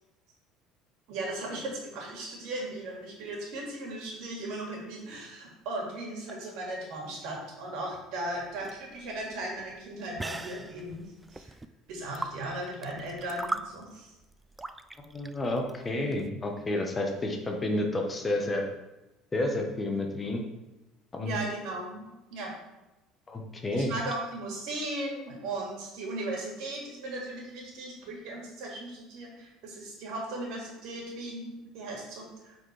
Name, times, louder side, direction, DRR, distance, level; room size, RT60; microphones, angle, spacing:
voice 1, 1.1-11.0 11.3-11.5 11.9-14.1 21.2-22.5 23.7-32.6, right 2 dB, 75° right, -1 dB, 2.2 m, -37 dB
sound 1, 8.3-16.3, right 2 dB, 10° right, 0.3 m, -40 dB
voice 2, 15.0-18.6 19.3-20.4 21.1-21.4 23.3-23.9, left 1 dB, 20° left, 2 dB, 1.1 m, -30 dB
8.1 x 4.3 x 3.4 m, 0.99 s
supercardioid pair, 110°, 0 cm